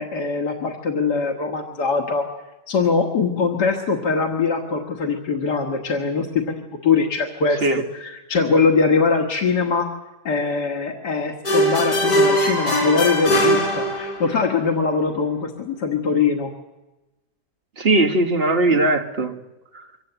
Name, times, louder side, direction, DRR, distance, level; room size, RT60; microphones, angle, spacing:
voice 1, 0.0-2.3 2.7-7.6 7.9-9.9 10.3-16.5, left 4 dB, 90° left, 2.1 m, -22 dB
sound 1, 11.4-14.4, equal, 70° left, 5.6 m, -20 dB
voice 2, 17.8-19.4 19.7-19.9, right 2 dB, 40° right, 1.7 m, -19 dB
24.0 x 17.0 x 8.0 m
omnidirectional pair, 1.7 m